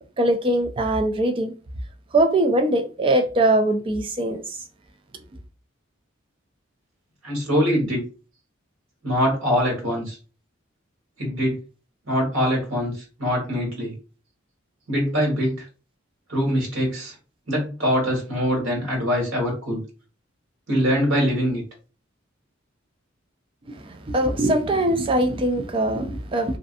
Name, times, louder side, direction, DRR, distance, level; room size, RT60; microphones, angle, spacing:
voice 1, 0.2-1.5 2.1-4.6 23.7-26.6, right 1 dB, 25° right, 0.3 m, -22 dB
voice 2, 7.2-8.0 9.0-10.2 11.2-11.6 12.1-13.9 14.9-15.6 16.3-17.1 17.5-19.8 20.7-21.6, equal, 80° right, 1.4 m, -23 dB
2.4 x 2.4 x 2.5 m
head